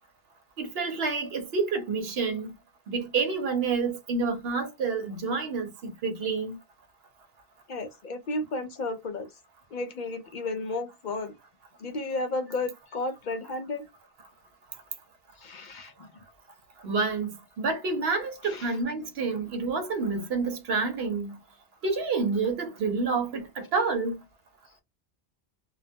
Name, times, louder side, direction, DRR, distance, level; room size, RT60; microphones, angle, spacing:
voice 1, 0.6-2.5 2.9-6.6 16.8-21.4 21.8-24.2, right 4 dB, 65° right, 0.9 m, -28 dB
voice 2, 7.7-9.3 9.7-11.3 11.8-13.8 15.4-16.1 18.4-18.7, left 2 dB, 60° left, 0.5 m, -33 dB
2.3 x 2.2 x 2.5 m
omnidirectional pair, 1.1 m